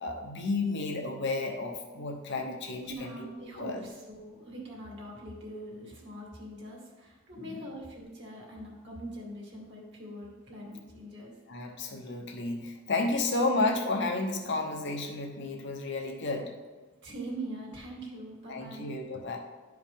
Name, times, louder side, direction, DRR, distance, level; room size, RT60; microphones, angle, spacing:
voice 1, 0.0-3.3 3.6-3.8 7.4-7.6 11.5-16.5 18.5-19.4, left 3 dB, 55° left, 3 dB, 1.0 m, -32 dB
voice 2, 2.8-11.7 13.1-13.5 17.0-18.9, right 1 dB, 55° right, -3 dB, 2.2 m, -43 dB
11.5 x 4.8 x 3.6 m, 1.3 s
head